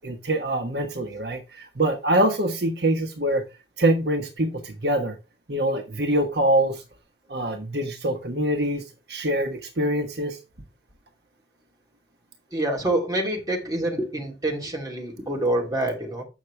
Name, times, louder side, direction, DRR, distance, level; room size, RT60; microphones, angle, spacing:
voice 1, 0.0-3.4 3.8-5.2 5.5-6.8 7.3-8.8 9.1-10.4, right 1 dB, 65° right, 1.2 m, -24 dB
voice 2, 12.5-16.2, right 1 dB, 20° right, 2.6 m, -26 dB
8.3 x 6.3 x 3.3 m
head